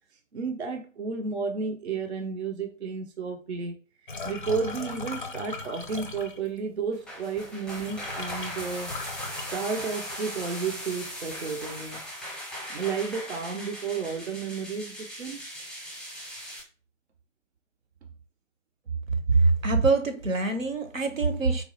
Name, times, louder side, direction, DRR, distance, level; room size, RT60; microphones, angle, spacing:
voice 1, 0.3-3.7 4.2-9.0 9.4-12.0 12.7-15.4, right 5 dB, 55° right, 0.5 m, -32 dB
sound 1, 4.1-6.6 7.4-7.5 7.8-10.2 10.5-11.0 11.3-12.0, left 3 dB, 40° left, 0.4 m, -38 dB
sound 2, 6.9-16.6, equal, 5° right, 0.7 m, -39 dB
voice 2, 19.3-21.6, right 3 dB, 80° right, 0.8 m, -24 dB
3.9 x 2.3 x 2.7 m
figure-of-eight pair, 145°, 40 cm